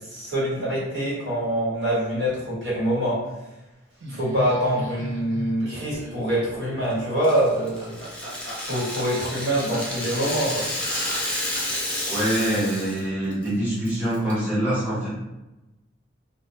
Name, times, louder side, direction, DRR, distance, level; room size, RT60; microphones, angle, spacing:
voice 1, 0.0-3.2 4.1-8.0 8.6-10.7, right 1 dB, 70° right, -8 dB, 1.3 m, -25 dB
Laughter, 4.0-11.9, equal, 85° right, 0.5 m, -37 dB
Rattle (instrument), 7.2-13.0 13.3-13.5 13.8-14.3, left 1 dB, 5° left, 0.3 m, -30 dB
voice 2, 12.0-15.1, right 1 dB, 10° right, -12 dB, 0.7 m, -25 dB
2.2 x 2.0 x 2.8 m, 1.0 s
head